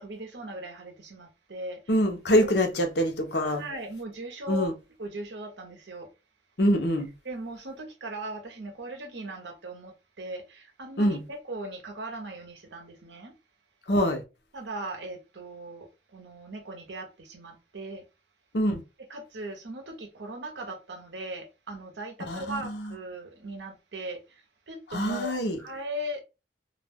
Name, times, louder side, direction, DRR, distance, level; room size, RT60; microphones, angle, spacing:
voice 1, 0.0-1.8 2.4-2.5 3.3-4.7 5.0-6.1 7.2-13.3 14.5-18.0 19.1-24.2 24.7-26.2, right 1 dB, 75° right, 0.8 m, -39 dB
voice 2, 1.9-3.6 4.5-4.7 6.6-7.1 11.0-11.2 13.9-14.2 18.5-18.8 22.3-22.9 24.9-25.6, equal, 65° left, 0.7 m, -25 dB
2.4 x 2.2 x 3.4 m
head